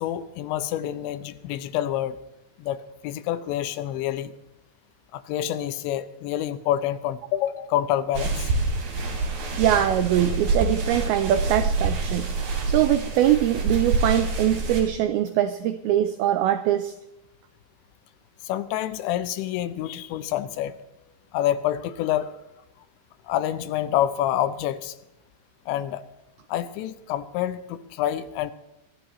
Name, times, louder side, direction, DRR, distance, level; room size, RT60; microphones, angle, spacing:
voice 1, 0.0-2.2 2.6-4.3 5.1-8.5 18.4-20.8 21.3-22.3 23.2-24.9 25.7-26.0 26.5-28.5, left 12 dB, 85° left, 13 dB, 3.1 m, -27 dB
sound 1, 8.1-14.8, right 3 dB, 65° right, 5.2 m, -26 dB
voice 2, 9.6-12.3 12.7-16.9, right 12 dB, 85° right, 9 dB, 2.2 m, -22 dB
23.0 x 14.5 x 3.1 m, 0.94 s
omnidirectional pair, 5.1 m